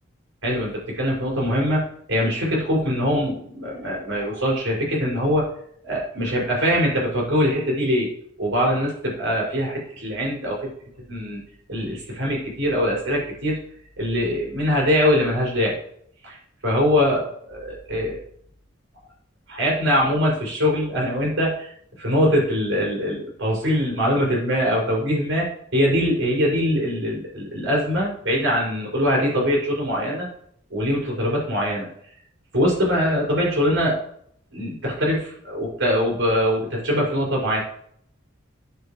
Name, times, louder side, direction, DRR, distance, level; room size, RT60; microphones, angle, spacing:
voice 1, 0.4-1.8 2.1-5.5 5.8-8.1 8.4-10.7 11.1-11.4 11.7-13.6 14.0-15.8 16.2-16.4 16.6-18.2 19.5-25.5 25.7-30.3 30.7-31.9 32.5-34.0 34.5-37.6, equal, 75° right, -3 dB, 6.0 m, -22 dB
15.0 x 9.8 x 3.1 m, 0.65 s
head